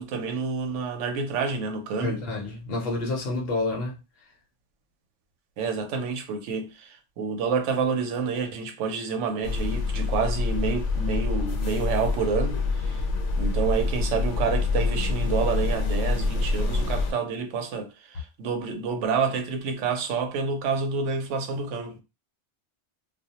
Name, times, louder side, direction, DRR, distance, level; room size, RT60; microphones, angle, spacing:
voice 1, 0.0-2.2 5.6-13.0 13.4-22.0, right 5 dB, 85° right, 0.9 m, -28 dB
voice 2, 2.0-4.0, left 2 dB, 60° left, 0.8 m, -29 dB
sound 1, 9.4-17.1, left 3 dB, 85° left, 0.9 m, -26 dB
2.3 x 2.0 x 2.7 m
omnidirectional pair, 1.2 m